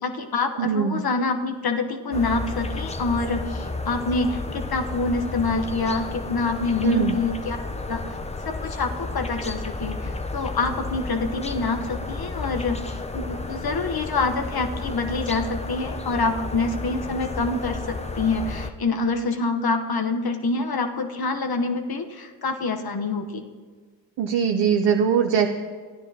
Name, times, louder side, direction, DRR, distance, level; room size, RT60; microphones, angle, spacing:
voice 1, 0.0-7.6 7.9-8.2 8.4-23.4, left 3 dB, 55° left, 5 dB, 1.0 m, -26 dB
voice 2, 0.6-1.0 6.8-7.1 24.2-25.5, right 7 dB, 70° right, 5 dB, 0.7 m, -21 dB
sound 1, 2.1-18.7, left 3 dB, 15° left, 0.6 m, -32 dB
14.0 x 10.0 x 2.8 m, 1.5 s
supercardioid pair, 45°, 45 cm